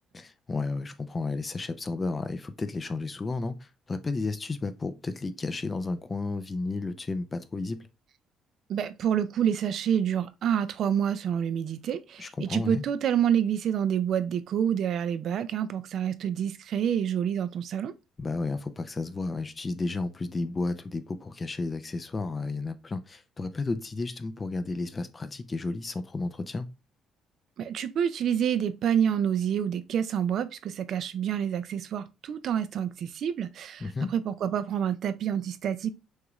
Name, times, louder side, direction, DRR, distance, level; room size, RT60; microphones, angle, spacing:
voice 1, 0.1-7.9 12.2-12.8 18.2-26.7 33.8-34.1, left 3 dB, 20° left, 0.4 m, -32 dB
voice 2, 8.7-17.9 27.6-35.9, right 9 dB, 50° right, 0.4 m, -28 dB
6.3 x 2.4 x 3.0 m
cardioid pair, 155°, 0 cm